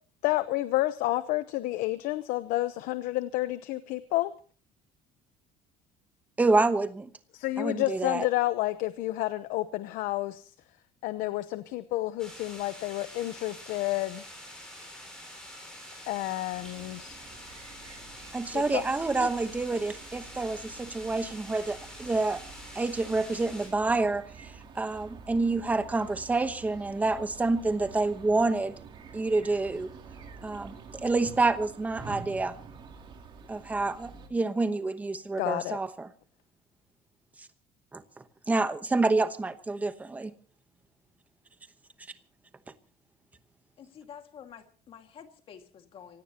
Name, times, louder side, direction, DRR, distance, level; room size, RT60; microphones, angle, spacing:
voice 1, 0.2-4.3 7.3-10.5 11.0-14.2 16.1-17.2 18.5-18.8 19.2-19.3 35.4-35.8, left 17 dB, 80° left, 13 dB, 0.9 m, -30 dB
voice 2, 6.4-7.1 7.6-8.3 18.3-22.4 22.7-24.2 24.7-28.7 29.1-29.9 30.4-32.6 33.5-36.1 37.9-38.0 38.5-40.3, right 3 dB, 10° right, 10 dB, 1.0 m, -28 dB
sound 1, 12.2-23.7, left 1 dB, 5° left, 7.7 m, -46 dB
sound 2, 16.5-34.3, right 5 dB, 35° right, 2.9 m, -48 dB
voice 3, 43.8-46.2, left 8 dB, 40° left, 6 dB, 2.1 m, -49 dB
25.5 x 17.5 x 2.9 m, 0.40 s
cardioid pair, 175°, 14 cm